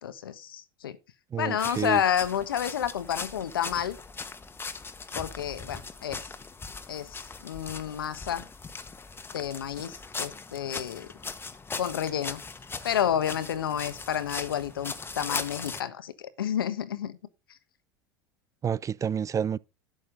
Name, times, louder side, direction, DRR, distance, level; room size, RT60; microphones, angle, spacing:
voice 1, 0.0-1.0 1.4-4.0 5.1-6.2 6.9-8.5 9.3-11.1 11.8-12.4 12.8-17.2, left 9 dB, 85° left, 1.3 m, -30 dB
voice 2, 1.3-2.0 18.6-19.6, right 8 dB, 30° right, 0.6 m, -29 dB
sound 1, 1.6-15.8, left 4 dB, 20° left, 1.4 m, -39 dB
11.5 x 8.6 x 3.8 m
hypercardioid pair, 80°, 12 cm